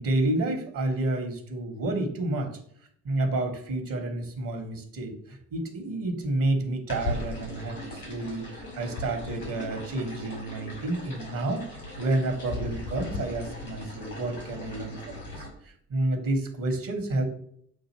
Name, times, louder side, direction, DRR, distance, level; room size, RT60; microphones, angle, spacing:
voice 1, 0.0-2.5 3.0-11.6 12.0-15.4 15.9-17.2, right 2 dB, 50° right, 5 dB, 1.3 m, -30 dB
sound 1, 6.9-15.5, left 2 dB, 80° left, 2.4 m, -38 dB
8.0 x 2.7 x 4.3 m, 0.66 s
figure-of-eight pair, 45°, 44 cm